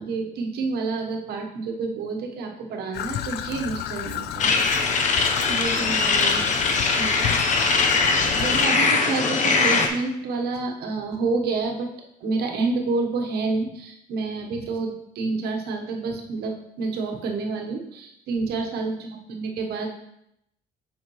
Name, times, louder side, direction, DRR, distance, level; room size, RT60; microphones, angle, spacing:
voice 1, 0.0-4.6 5.0-6.6 7.0-7.4 8.3-11.9 12.2-19.9, right 3 dB, 70° right, 2 dB, 1.2 m, -29 dB
Traffic noise roadway noise / Trickle dribble, 2.9-8.7, left 11 dB, 75° left, 0.4 m, -32 dB
sound 1, 4.4-9.9, left 4 dB, 45° left, 0.9 m, -21 dB
8.1 x 5.1 x 3.1 m, 0.80 s
cardioid pair, 110°, 17 cm